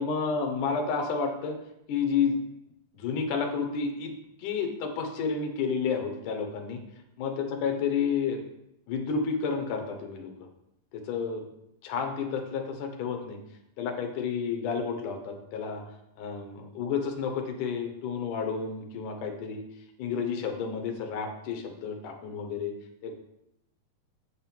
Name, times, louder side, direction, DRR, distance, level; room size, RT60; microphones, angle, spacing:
voice 1, 0.0-1.6 1.9-2.4 2.9-4.1 4.4-6.8 7.2-8.5 8.9-10.3 10.9-11.4 11.8-13.4 13.8-15.8 16.2-19.6 20.0-22.7 23.0-23.1, left 5 dB, 70° left, 3 dB, 2.3 m, -30 dB
8.2 x 5.4 x 4.4 m, 0.84 s
omnidirectional pair, 4.1 m